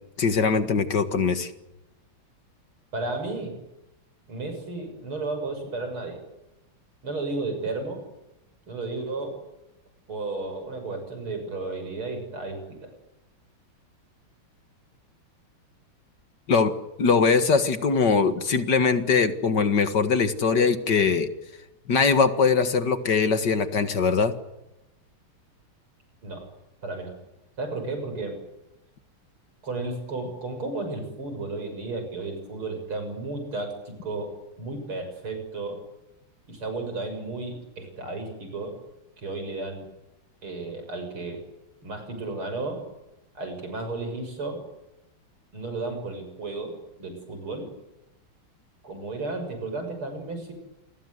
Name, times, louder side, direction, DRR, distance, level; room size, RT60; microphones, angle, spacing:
voice 1, 0.2-1.5 16.5-21.3 21.9-24.4, left 5 dB, 55° left, 9 dB, 2.2 m, -22 dB
voice 2, 2.9-3.5 4.3-6.2 7.0-8.0 8.7-9.4 10.1-12.9 26.2-26.5 26.8-27.1 27.6-28.4 29.6-35.8 36.5-38.8 39.2-39.9 40.4-41.4 41.8-42.8 43.3-44.6 45.5-47.7 48.8-50.5, right 3 dB, 85° right, 6 dB, 7.6 m, -33 dB
29.0 x 20.5 x 8.1 m, 0.94 s
omnidirectional pair, 2.3 m